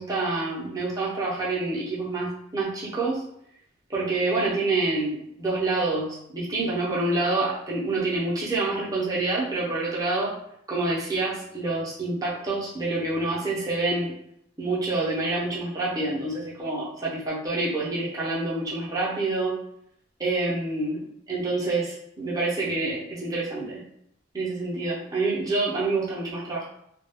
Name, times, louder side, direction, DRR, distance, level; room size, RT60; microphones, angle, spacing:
voice 1, 0.0-3.2 3.9-10.3 10.7-14.2 14.6-19.6 20.2-23.8 24.3-26.6, right 2 dB, 15° right, -7 dB, 0.6 m, -27 dB
2.2 x 2.2 x 3.4 m, 0.73 s
head